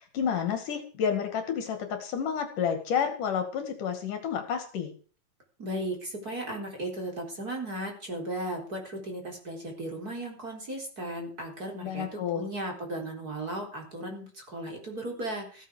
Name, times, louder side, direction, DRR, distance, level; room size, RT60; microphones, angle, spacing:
voice 1, 0.1-4.9 11.8-12.4, left 7 dB, 65° left, 7 dB, 3.6 m, -30 dB
voice 2, 5.6-15.7, right 1 dB, 25° right, 1 dB, 4.3 m, -36 dB
16.0 x 9.1 x 6.4 m, 0.40 s
omnidirectional pair, 4.0 m